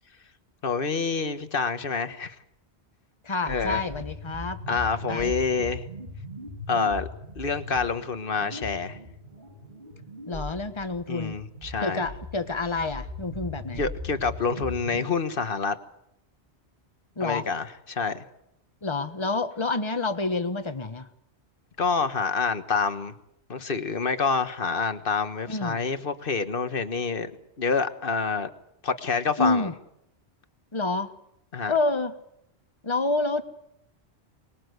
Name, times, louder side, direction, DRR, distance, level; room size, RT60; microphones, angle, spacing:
voice 1, 0.6-2.3 3.5-3.8 4.7-5.8 6.7-7.1 7.3-9.0 11.1-12.0 13.8-15.8 17.2-18.2 21.8-23.1 23.5-27.3 27.6-28.5 28.8-29.7 31.5-31.7, left 5 dB, 55° left, 1.5 m, -27 dB
voice 2, 3.2-4.6 5.1-5.3 10.3-11.4 11.8-13.9 17.2-17.5 18.8-21.1 25.5-25.8 29.4-29.7 30.7-31.1 31.7-32.1 32.8-33.4, left 3 dB, 25° left, 1.3 m, -28 dB
sound 1, 3.4-15.0, left 1 dB, 55° right, 7.0 m, -39 dB
24.5 x 20.5 x 8.1 m
omnidirectional pair, 1.1 m